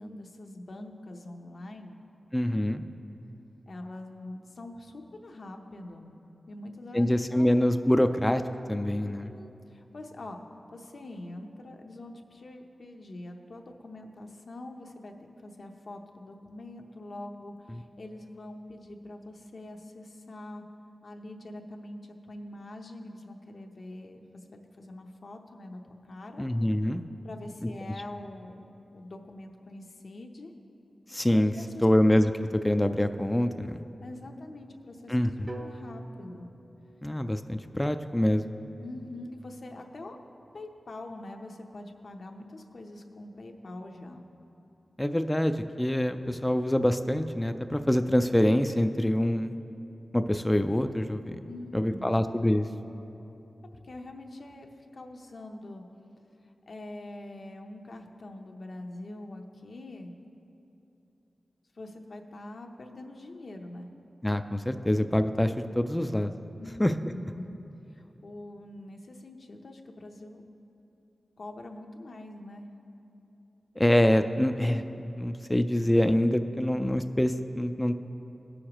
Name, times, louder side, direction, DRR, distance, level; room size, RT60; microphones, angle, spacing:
voice 1, 0.0-2.0 3.7-6.1 6.5-7.5 9.0-10.4 10.7-15.1 15.4-20.6 21.0-24.4 24.8-26.5 27.2-30.5 31.3-31.9 34.0-35.3 35.5-36.5 38.8-40.2 40.5-44.2 51.5-52.3 53.7-55.8 56.4-60.1 61.7-63.9 66.6-67.6 67.9-70.4 71.4-72.7, left 1 dB, 65° left, 3 dB, 0.7 m, -44 dB
voice 2, 2.3-2.8 6.9-8.4 8.7-9.3 26.4-27.0 31.1-31.5 31.8-32.3 32.6-33.8 35.1-35.5 37.0-38.5 45.0-49.5 50.1-51.4 51.7-52.7 64.2-66.3 66.8-66.9 73.8-77.9, left 1 dB, 15° left, 8 dB, 0.4 m, -25 dB
sound 1, 35.5-39.5, right 2 dB, 45° right, 0.9 m, -48 dB
17.5 x 6.5 x 3.0 m, 2.9 s
wide cardioid pair, 70°, 0 cm